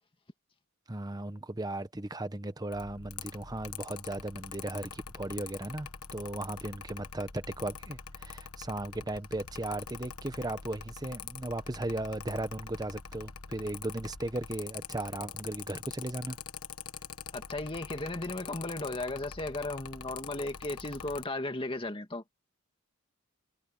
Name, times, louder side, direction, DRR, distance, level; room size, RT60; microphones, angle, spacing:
voice 1, 0.9-16.4, right 1 dB, 20° right, 1.0 m, -36 dB
Mechanical fan, 2.7-21.3, left 7 dB, 90° left, 1.4 m, -45 dB
voice 2, 17.3-22.2, left 2 dB, 25° left, 2.1 m, -35 dB
head